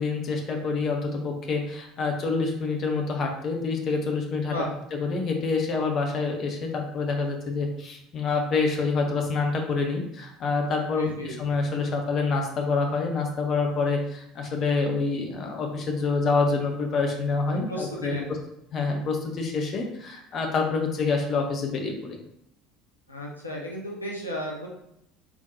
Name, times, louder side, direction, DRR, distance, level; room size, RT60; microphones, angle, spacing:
voice 1, 0.0-4.5 4.9-18.2 18.7-22.2, left 4 dB, 40° left, 2 dB, 0.8 m, -27 dB
voice 2, 11.0-11.3 17.5-18.3 23.1-24.7, equal, 85° left, -2 dB, 0.6 m, -34 dB
4.6 x 3.6 x 2.6 m, 0.76 s
figure-of-eight pair, 65°, 0 cm